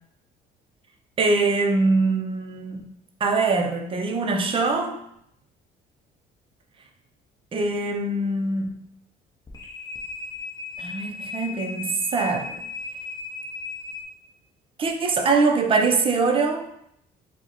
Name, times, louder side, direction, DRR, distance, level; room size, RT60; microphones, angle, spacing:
voice 1, 1.2-2.8 3.2-5.0 7.5-8.7 10.8-12.6 14.8-16.7, right 3 dB, 30° right, 3 dB, 0.5 m, -23 dB
sound 1, 9.4-14.0, left 4 dB, 20° left, 0.6 m, -36 dB
4.5 x 2.1 x 2.9 m, 0.74 s
cardioid pair, 110°, 17 cm